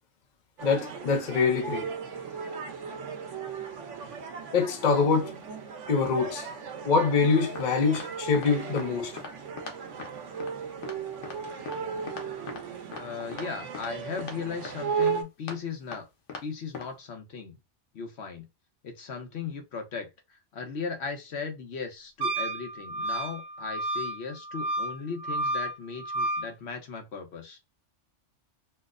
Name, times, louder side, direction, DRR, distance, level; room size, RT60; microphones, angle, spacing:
voice 1, 0.6-1.9 4.5-5.4 5.9-6.5 6.8-9.2, left 5 dB, 45° left, 0.7 m, -25 dB
sound 1, 0.6-15.2, right 6 dB, 90° right, 1.2 m, -36 dB
sound 2, 7.6-7.7 7.9-8.1 8.3-8.5 8.8-8.9 9.2-9.3 9.6-9.7 10.0-10.1 10.4-10.5 10.8-10.9 11.2-11.4 11.7-11.8 12.1-12.6 12.9-13.0 13.3-13.5 13.7-13.9 14.2-14.4 14.6-14.7 15.0-15.1 15.5-15.6 15.9-16.0 16.3-16.4 16.7-16.9, left 5 dB, 90° left, 1.2 m, -39 dB
voice 2, 12.9-16.1 16.4-17.6 17.9-18.5 18.8-27.6, left 5 dB, 65° left, 1.1 m, -37 dB
Wind instrument woodwind instrument, 22.2-26.5, right 1 dB, 60° right, 0.8 m, -31 dB
4.3 x 2.0 x 2.4 m
omnidirectional pair, 1.2 m